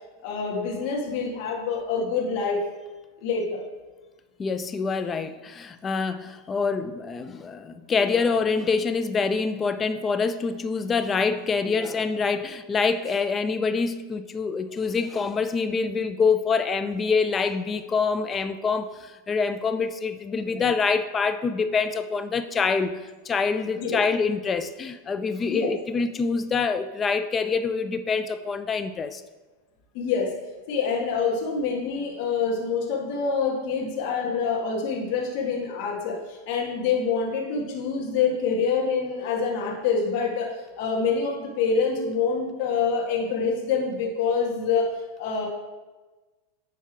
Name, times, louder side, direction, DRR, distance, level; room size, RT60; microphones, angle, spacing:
voice 1, 0.2-2.6 3.2-3.6 23.8-24.0 25.5-25.7 29.9-30.3 30.7-44.9 45.2-45.5, left 5 dB, 60° left, 0 dB, 1.7 m, -26 dB
voice 2, 4.4-22.9 23.2-29.2, left 5 dB, 25° left, 10 dB, 0.5 m, -26 dB
10.0 x 3.5 x 4.5 m, 1.2 s
hypercardioid pair, 115°, 0 cm